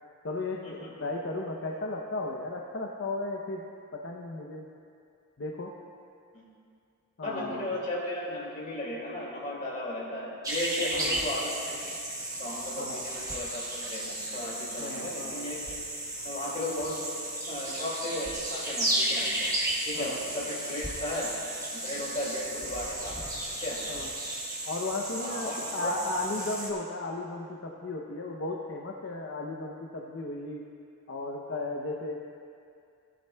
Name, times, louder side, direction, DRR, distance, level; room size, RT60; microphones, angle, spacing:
voice 1, 0.2-3.7 3.9-4.7 5.4-5.7 7.2-7.6 11.0-11.3 12.8-13.0 14.8-15.4 19.9-20.2 23.9-24.1 24.6-30.6 31.1-32.2, left 2 dB, 55° left, 0 dB, 0.7 m, -35 dB
voice 2, 7.2-11.9 12.4-15.6 16.2-17.0 17.5-19.5 19.9-21.3 21.7-23.3 23.6-23.8 25.2-25.9, left 1 dB, 35° left, -5 dB, 2.4 m, -35 dB
sound 1, 10.4-26.7, right 1 dB, 15° right, 1.2 m, -34 dB
16.5 x 11.0 x 2.3 m, 2.4 s
head